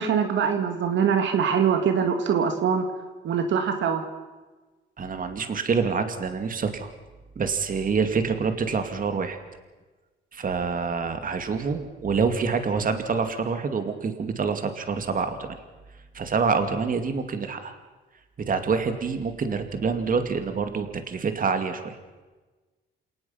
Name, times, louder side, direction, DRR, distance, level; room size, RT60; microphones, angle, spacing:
voice 1, 0.0-2.8 3.2-4.0, right 7 dB, 70° right, 6 dB, 2.2 m, -23 dB
voice 2, 5.0-6.9 7.4-9.4 10.3-15.6 16.1-17.8 18.4-22.0, right 5 dB, 45° right, 7 dB, 2.3 m, -26 dB
28.5 x 18.5 x 5.8 m, 1.2 s
cardioid pair, 90°, 20 cm